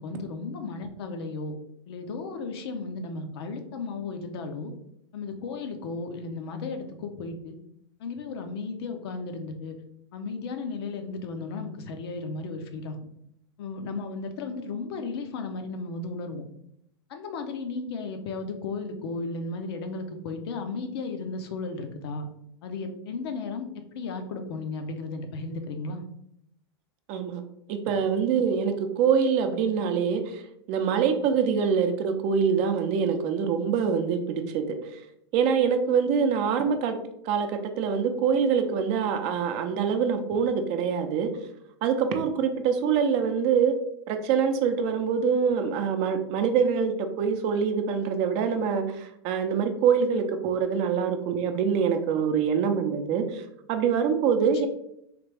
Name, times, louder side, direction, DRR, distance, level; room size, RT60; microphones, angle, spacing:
voice 1, 0.0-1.6 1.9-4.7 5.1-7.6 8.0-9.8 10.1-13.0 13.6-16.4 17.1-22.3 22.6-23.7 23.9-26.0 54.4-54.7, left 3 dB, 70° left, 6 dB, 0.6 m, -34 dB
voice 2, 27.1-27.4 27.7-30.4 30.7-35.0 35.3-37.0 37.2-41.3 41.8-43.7 44.1-53.4 53.7-54.7, right 6 dB, 50° right, 7 dB, 0.5 m, -25 dB
3.3 x 2.4 x 3.3 m, 0.75 s
hypercardioid pair, 105°, 14 cm